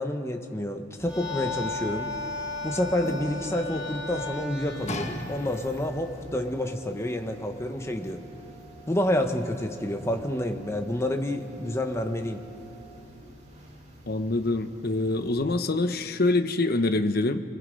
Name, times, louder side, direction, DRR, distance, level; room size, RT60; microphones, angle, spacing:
voice 1, 0.0-2.1 2.6-8.3 8.9-12.4, left 1 dB, 15° left, 5 dB, 1.3 m, -29 dB
sound 1, 1.0-6.2, left 3 dB, 5° right, 5.3 m, -36 dB
sound 2, 1.0-15.4, right 1 dB, 35° right, 2.7 m, -48 dB
sound 3, 4.9-6.1 6.9-7.0, left 1 dB, 35° left, 1.5 m, -36 dB
voice 2, 14.1-17.4, left 2 dB, 50° left, 9 dB, 1.0 m, -25 dB
30.0 x 22.5 x 5.4 m, 2.6 s
head